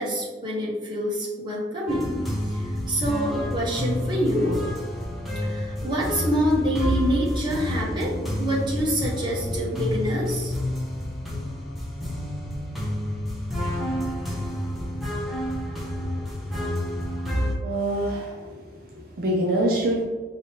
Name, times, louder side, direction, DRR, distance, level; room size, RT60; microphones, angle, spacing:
voice 1, 0.0-2.1 2.5-4.6 5.4-10.5, equal, 25° right, -5 dB, 0.9 m, -26 dB
sound 1, 1.9-17.5, left 1 dB, ahead, 0.7 m, -29 dB
voice 2, 17.6-20.0, right 1 dB, 55° right, -2 dB, 0.6 m, -26 dB
4.8 x 2.8 x 2.9 m, 1.4 s
head